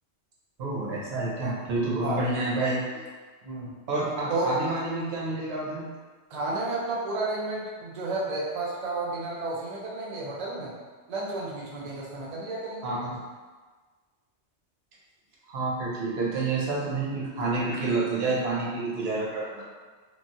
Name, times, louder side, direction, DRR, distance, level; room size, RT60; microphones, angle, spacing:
voice 1, 0.6-2.9 3.9-5.9 12.8-13.1 15.5-19.6, right 3 dB, 65° right, -4 dB, 0.9 m, -29 dB
voice 2, 6.3-10.7 11.1-12.9, right 2 dB, 45° right, -5 dB, 0.6 m, -31 dB
3.1 x 2.3 x 2.6 m, 1.4 s
omnidirectional pair, 1.2 m